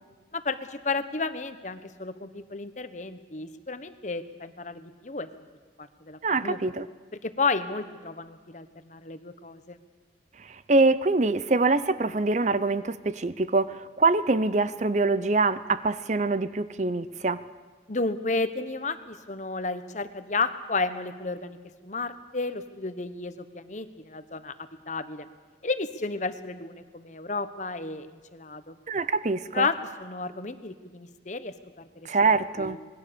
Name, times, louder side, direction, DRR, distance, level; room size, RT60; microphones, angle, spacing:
voice 1, 0.3-5.3 5.8-6.6 7.2-9.8 17.9-21.6 21.8-25.3 25.6-28.7 29.5-32.1 32.6-32.8, left 3 dB, 40° left, 11 dB, 1.1 m, -32 dB
voice 2, 6.2-6.9 10.7-17.4 28.9-29.7 32.0-32.8, right 3 dB, 40° right, 14 dB, 0.7 m, -24 dB
26.5 x 20.5 x 7.0 m, 1.4 s
head